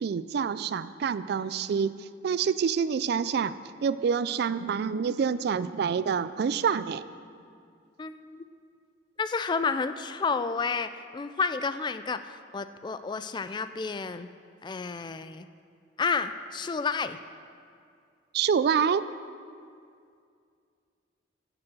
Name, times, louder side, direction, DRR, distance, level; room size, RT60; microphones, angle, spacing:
voice 1, 0.0-3.6 3.8-7.0 18.3-19.1, right 6 dB, 55° right, 15 dB, 0.3 m, -27 dB
voice 2, 8.0-8.4 9.2-14.3 14.6-15.5 16.0-17.2, left 5 dB, 25° left, 12 dB, 0.3 m, -31 dB
9.6 x 6.8 x 7.7 m, 2.3 s
head